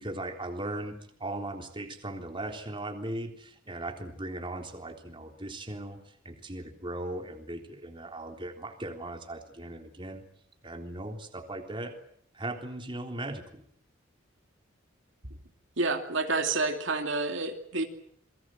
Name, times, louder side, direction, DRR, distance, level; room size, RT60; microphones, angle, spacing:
voice 1, 0.0-6.0 6.2-10.2 10.6-12.0 12.3-13.7, right 1 dB, 25° right, 4 dB, 3.6 m, -38 dB
voice 2, 15.8-17.9, right 3 dB, 65° right, 4 dB, 2.8 m, -29 dB
28.0 x 22.5 x 7.7 m, 0.65 s
head